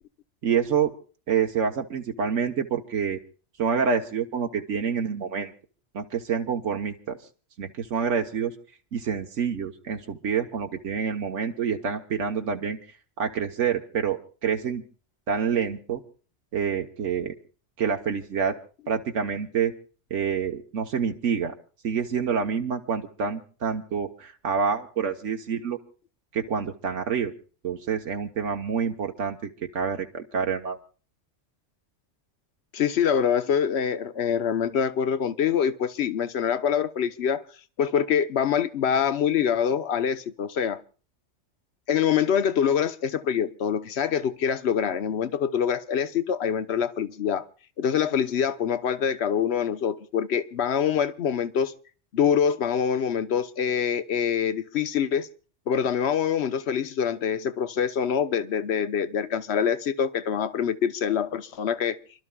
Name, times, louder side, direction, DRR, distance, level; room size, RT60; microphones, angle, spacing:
voice 1, 0.4-0.9 1.3-3.2 3.6-5.5 5.9-7.2 7.6-8.5 8.9-12.8 13.2-14.8 15.3-16.0 16.5-17.3 17.8-18.6 18.9-19.7 20.1-21.5 21.8-25.8 26.3-27.3 27.6-30.8, right 6 dB, 85° right, 1.4 m, -27 dB
voice 2, 32.7-37.4 37.8-40.8 41.9-47.4 47.8-51.7 52.1-55.3 55.7-62.0, left 8 dB, 65° left, 1.1 m, -25 dB
29.5 x 12.5 x 2.3 m
omnidirectional pair, 1.2 m